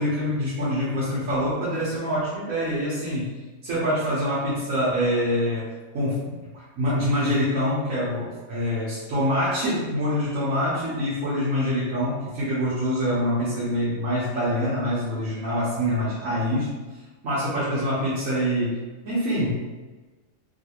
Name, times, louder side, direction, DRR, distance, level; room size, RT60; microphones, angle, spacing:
voice 1, 0.0-16.7 17.2-19.6, equal, 85° right, -9 dB, 1.3 m, -25 dB
3.2 x 2.4 x 2.9 m, 1.3 s
omnidirectional pair, 1.3 m